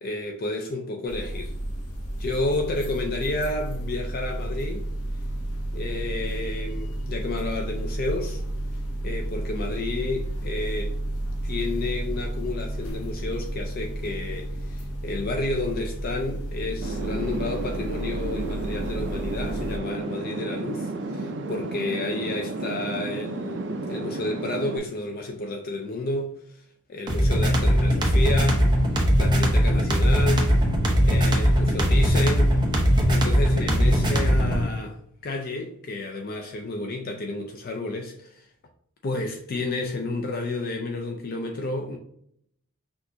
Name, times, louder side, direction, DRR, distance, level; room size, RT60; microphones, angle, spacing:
voice 1, 0.0-1.6 2.2-4.9 5.7-8.4 9.0-11.0 11.4-26.6 26.9-28.6 29.2-30.5 31.0-32.5 33.1-35.0 35.2-38.5 39.0-42.0, left 2 dB, 45° left, 0.4 m, -31 dB
sound 1, 1.1-19.8, right 1 dB, 80° left, 0.8 m, -32 dB
sound 2, 16.8-24.8, right 2 dB, 55° right, 0.5 m, -32 dB
sound 3, 27.1-34.6, equal, 20° right, 0.7 m, -20 dB
6.0 x 2.5 x 2.7 m
head